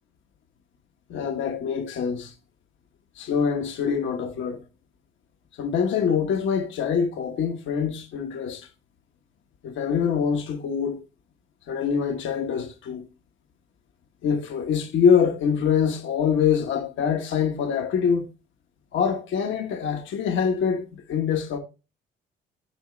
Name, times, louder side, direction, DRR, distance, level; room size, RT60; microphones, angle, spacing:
voice 1, 1.1-2.3 3.1-4.6 5.6-8.7 9.6-11.0 11.7-13.0 14.2-18.3 18.9-21.6, left 7 dB, 75° left, 1.2 m, -24 dB
8.8 x 4.6 x 3.2 m
cardioid pair, 90°, 20 cm